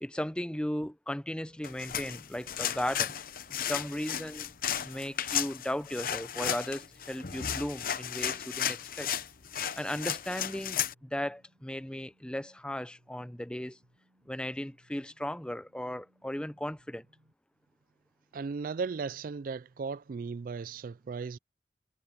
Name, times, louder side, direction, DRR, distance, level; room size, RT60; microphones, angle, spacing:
voice 1, 0.0-3.1 3.6-4.5 4.8-9.1 9.7-13.8 14.3-17.0, left 1 dB, 5° left, 0.6 m, -36 dB
sound 1, 1.3-17.3, equal, 75° right, 6.8 m, -67 dB
sound 2, 1.6-10.9, left 9 dB, 50° left, 0.9 m, -34 dB
voice 2, 18.3-21.4, right 5 dB, 50° right, 0.3 m, -36 dB
head